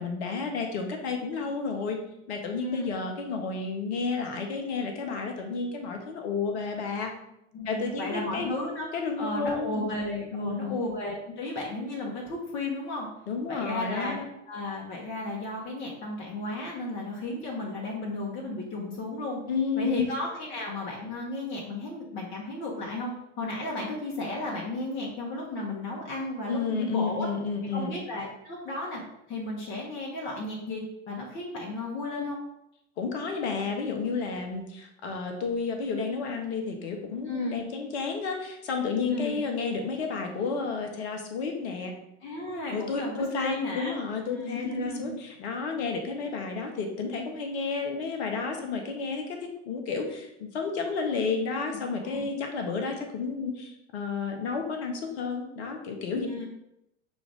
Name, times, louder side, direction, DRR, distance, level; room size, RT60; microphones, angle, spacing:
voice 1, 0.0-2.0 2.3-7.1 7.6-8.5 8.9-9.9 10.3-10.7 13.3-14.2 19.5-20.1 26.5-27.9 33.0-42.0 42.7-56.3, left 4 dB, 60° left, 4 dB, 0.9 m, -31 dB
voice 2, 2.6-2.9 7.5-8.9 9.2-13.1 13.5-14.2 14.5-19.4 19.8-27.3 27.7-29.0 29.3-32.4 37.2-37.6 39.0-39.4 42.2-44.0 44.3-45.2 52.0-52.3 56.1-56.5, left 2 dB, 35° left, -3 dB, 1.1 m, -34 dB
6.0 x 2.4 x 3.4 m, 0.81 s
figure-of-eight pair, 70°, 36 cm